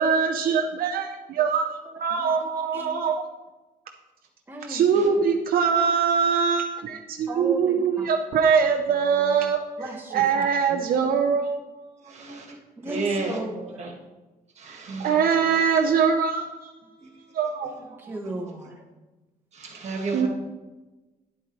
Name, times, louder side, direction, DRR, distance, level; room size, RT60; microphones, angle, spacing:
voice 1, 0.0-3.2 4.7-9.6 10.1-11.5 14.7-16.7 17.3-17.8 20.1-20.3, right 6 dB, 70° right, 4 dB, 0.6 m, -23 dB
voice 2, 4.5-5.1 7.3-8.1 9.8-10.4 10.7-11.1 12.8-13.9 17.6-18.7, right 1 dB, 15° right, 0 dB, 1.1 m, -36 dB
voice 3, 12.0-12.6 12.8-13.9 14.6-15.2 17.0-17.1 18.2-18.3 19.5-20.3, right 3 dB, 45° right, 2 dB, 1.6 m, -32 dB
10.5 x 8.2 x 3.0 m, 1.1 s
cardioid pair, 145°, 16 cm